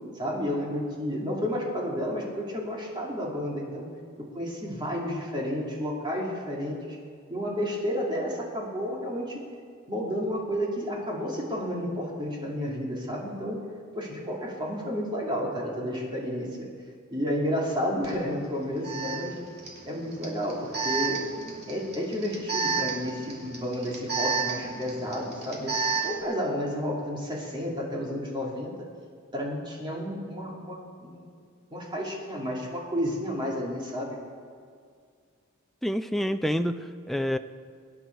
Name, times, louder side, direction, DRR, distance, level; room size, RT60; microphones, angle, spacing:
voice 1, 0.1-3.9 4.2-7.0 7.3-9.4 9.9-13.6 13.9-16.7 17.1-19.3 19.8-21.2 21.7-25.7 26.0-28.7 29.3-31.3 31.7-34.2, equal, 20° right, -3 dB, 2.7 m, -31 dB
Alarm, 18.0-18.1 18.8-26.2, right 5 dB, 50° right, 2.7 m, -32 dB
voice 2, 35.8-37.4, equal, ahead, 8 dB, 0.4 m, -28 dB
23.0 x 9.9 x 4.6 m, 2.2 s
head